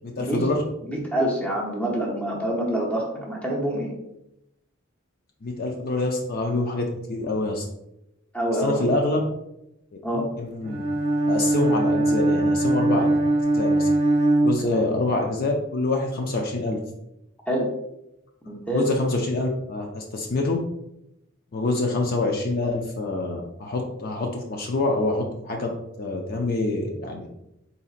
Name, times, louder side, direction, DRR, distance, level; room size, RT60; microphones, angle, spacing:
voice 1, 0.0-0.6 5.4-7.7 8.5-9.2 10.1-10.8 11.3-13.1 13.5-13.9 14.4-16.8 18.7-20.6 21.5-25.7 26.0-27.3, left 2 dB, 45° left, 1 dB, 0.5 m, -26 dB
voice 2, 0.9-3.9 8.3-9.0 10.0-10.3 14.6-14.9 17.5-17.7 18.5-18.9, right 1 dB, 5° left, -2 dB, 0.9 m, -26 dB
Bowed string instrument, 10.6-15.2, right 2 dB, 35° right, 0.8 m, -21 dB
4.1 x 4.0 x 2.5 m, 0.84 s
head